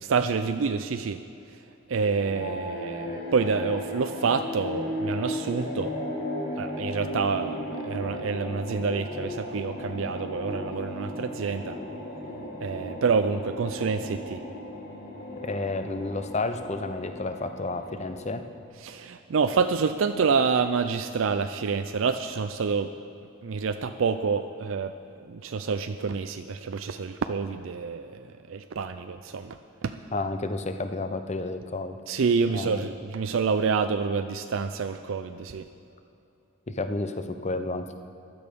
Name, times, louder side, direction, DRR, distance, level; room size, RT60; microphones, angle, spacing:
voice 1, 0.0-1.2 1.9-6.0 6.6-11.8 12.6-14.4 18.8-22.9 23.4-24.9 25.3-30.0 32.1-35.7, right 5 dB, 70° right, 9 dB, 0.4 m, -27 dB
sound 1, 2.0-18.6, left 1 dB, 50° left, 1.9 m, -36 dB
voice 2, 15.4-18.4 30.1-32.0 32.5-32.8 36.7-37.9, left 2 dB, 35° left, 8 dB, 0.7 m, -31 dB
15.5 x 11.0 x 5.2 m, 2.7 s
head